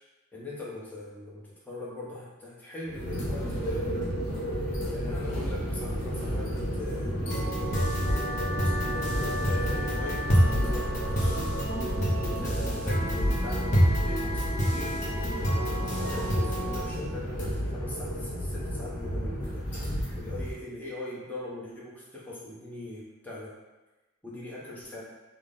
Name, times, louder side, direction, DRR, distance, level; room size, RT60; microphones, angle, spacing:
voice 1, 0.3-4.0 4.8-7.9 8.5-11.5 12.2-19.7 20.2-23.6 24.2-25.0, left 2 dB, 10° left, -6 dB, 0.8 m, -41 dB
sound 1, 2.9-20.5, equal, 55° left, 1.3 m, -32 dB
sound 2, 7.3-16.8, equal, 35° left, 0.8 m, -28 dB
5.8 x 2.1 x 3.7 m, 1.1 s
head